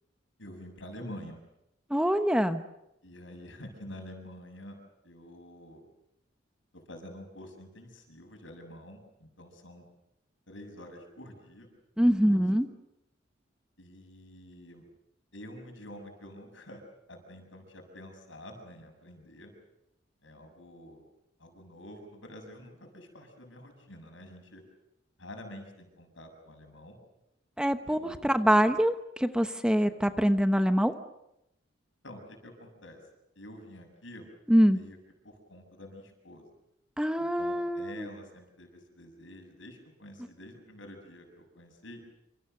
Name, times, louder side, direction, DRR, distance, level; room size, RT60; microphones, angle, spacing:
voice 1, 0.4-1.4 3.0-4.8 5.0-5.8 6.9-9.9 10.5-11.7 12.2-12.4 13.8-14.8 15.3-16.8 17.1-19.5 20.2-21.0 21.4-24.6 25.2-27.0 27.9-28.1 32.0-33.0 33.4-34.3 34.7-35.0 35.2-36.5 37.2-42.0, left 1 dB, 80° left, 5 dB, 6.9 m, -48 dB
voice 2, 1.9-2.6 12.0-12.7 27.6-31.0 34.5-34.8 37.0-38.1, equal, 5° right, 9 dB, 1.0 m, -24 dB
27.0 x 27.0 x 6.7 m, 0.84 s
head